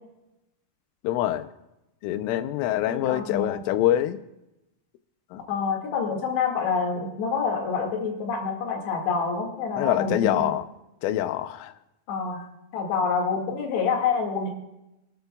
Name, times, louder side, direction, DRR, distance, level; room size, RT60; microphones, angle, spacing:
voice 1, 1.0-1.5 2.0-4.2 5.3-5.4 9.8-10.7 11.0-11.7, left 13 dB, 90° left, 12 dB, 3.2 m, -25 dB
voice 2, 2.9-3.6 5.5-10.5 12.1-12.5 12.7-14.5, left 5 dB, 65° left, 1 dB, 4.1 m, -27 dB
25.0 x 13.0 x 2.3 m, 0.91 s
omnidirectional pair, 5.5 m